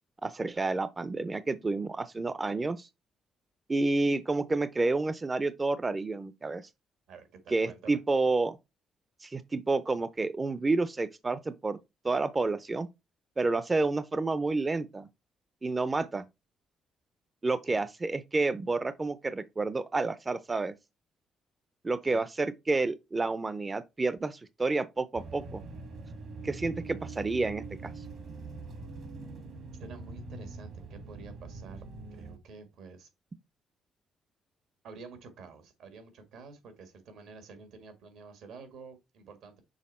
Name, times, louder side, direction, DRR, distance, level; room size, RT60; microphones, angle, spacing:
voice 1, 0.2-2.9 3.7-6.7 7.5-8.6 9.2-11.8 12.0-12.9 13.4-15.1 15.6-16.2 17.4-20.7 21.8-25.6 26.4-28.0, right 3 dB, 25° right, 0.5 m, -30 dB
voice 2, 7.1-8.0 17.7-17.8 22.1-22.2 29.8-33.1 34.8-39.6, right 4 dB, 80° right, 1.9 m, -49 dB
sound 1, 25.1-32.4, right 3 dB, 65° right, 1.5 m, -43 dB
6.3 x 3.6 x 4.2 m
cardioid pair, 90°, 0 cm